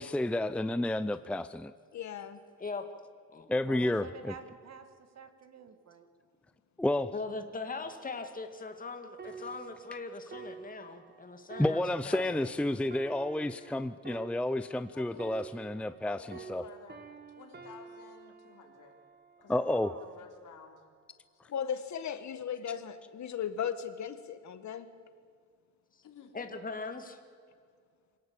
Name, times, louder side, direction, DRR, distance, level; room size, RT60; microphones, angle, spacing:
voice 1, 0.0-1.7 3.5-4.3 6.8-7.1 11.6-16.6 19.5-19.9, left 1 dB, 5° left, 12 dB, 0.5 m, -31 dB
voice 2, 1.9-2.4 21.5-24.9, left 8 dB, 65° left, 11 dB, 1.7 m, -36 dB
voice 3, 3.6-6.1 19.8-20.3, right 6 dB, 60° right, 8 dB, 2.1 m, -49 dB
voice 4, 7.1-12.5 26.3-27.2, left 3 dB, 30° left, 6 dB, 2.1 m, -40 dB
sound 1, 9.2-16.0 16.3-19.9 20.5-20.7, right 6 dB, 35° right, 1.5 m, -49 dB
voice 5, 14.9-15.7 16.0-18.9 19.4-20.9 21.4-21.7 26.0-26.4, left 6 dB, 90° left, 2 dB, 4.0 m, -53 dB
26.0 x 18.0 x 8.7 m, 2.1 s
wide cardioid pair, 155°, 30 cm